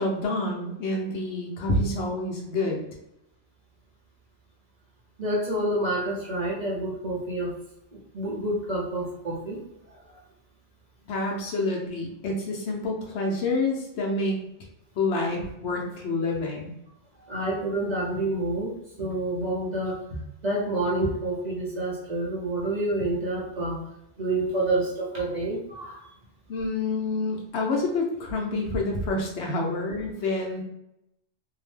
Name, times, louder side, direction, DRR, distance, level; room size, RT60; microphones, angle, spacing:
voice 1, 0.0-2.8 11.1-14.4 14.9-16.7 26.5-30.6, left 2 dB, 70° left, -1 dB, 0.9 m, -28 dB
voice 2, 5.2-7.5 8.1-9.6 9.9-10.0 17.2-20.0 20.4-23.9 24.2-26.0 29.6-29.7, right 1 dB, 45° right, -5 dB, 0.7 m, -28 dB
2.7 x 2.1 x 3.1 m, 0.83 s
omnidirectional pair, 1.2 m